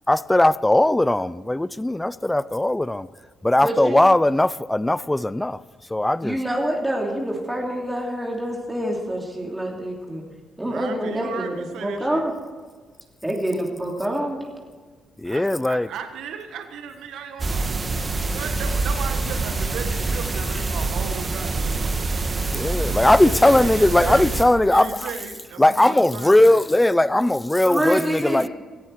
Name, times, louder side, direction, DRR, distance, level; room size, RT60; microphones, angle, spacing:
voice 1, 0.1-3.1 3.4-5.6 5.9-6.4 15.2-15.9 18.2-18.3 22.4-25.1 25.6-28.5, left 1 dB, 10° left, 18 dB, 0.5 m, -19 dB
voice 2, 3.6-4.0 6.2-10.2 10.6-12.3 13.2-14.4 27.7-28.5, right 1 dB, 10° right, -1 dB, 2.9 m, -26 dB
voice 3, 10.6-12.3 15.2-17.8 18.2-22.4 23.1-26.6, right 6 dB, 80° right, 6 dB, 1.4 m, -36 dB
sound 1, 17.4-24.4, right 3 dB, 30° right, 1.7 m, -25 dB
18.0 x 14.5 x 4.8 m, 1.5 s
cardioid pair, 90°, 0 cm